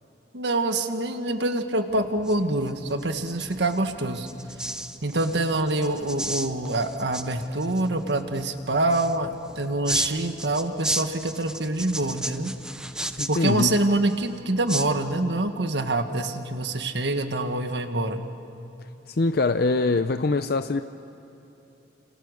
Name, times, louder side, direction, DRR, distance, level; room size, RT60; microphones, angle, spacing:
voice 1, 0.3-4.3 5.0-12.5 13.3-18.2, right 2 dB, 70° right, 7 dB, 1.7 m, -25 dB
sound 1, 1.9-15.5, right 1 dB, 5° right, 0.8 m, -35 dB
voice 2, 13.2-13.7 19.2-20.8, left 3 dB, 60° left, 9 dB, 0.6 m, -23 dB
30.0 x 27.5 x 6.6 m, 3.0 s
head